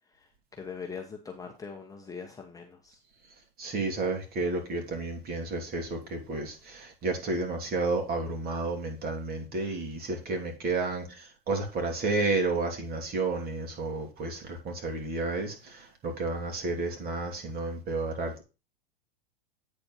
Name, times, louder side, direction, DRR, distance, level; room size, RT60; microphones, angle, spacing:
voice 1, 0.1-3.0, left 5 dB, 10° left, 1.0 m, -42 dB
voice 2, 3.6-18.4, right 3 dB, 30° right, 2.7 m, -31 dB
8.7 x 4.4 x 5.5 m
hypercardioid pair, 120°, 30 cm